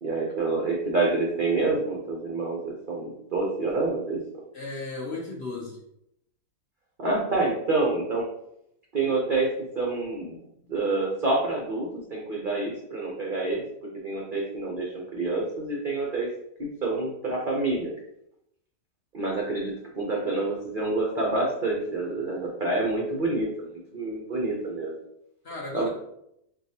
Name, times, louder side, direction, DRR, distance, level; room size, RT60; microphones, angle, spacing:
voice 1, 0.0-4.2 7.0-8.3 8.9-10.4 10.7-13.6 14.0-16.3 16.6-17.9 19.1-24.9 25.7-25.9, right 3 dB, 60° right, -2 dB, 0.5 m, -27 dB
voice 2, 4.5-5.8 25.4-25.9, left 3 dB, 50° left, -2 dB, 0.8 m, -35 dB
6.2 x 2.3 x 2.8 m, 0.78 s
omnidirectional pair, 1.7 m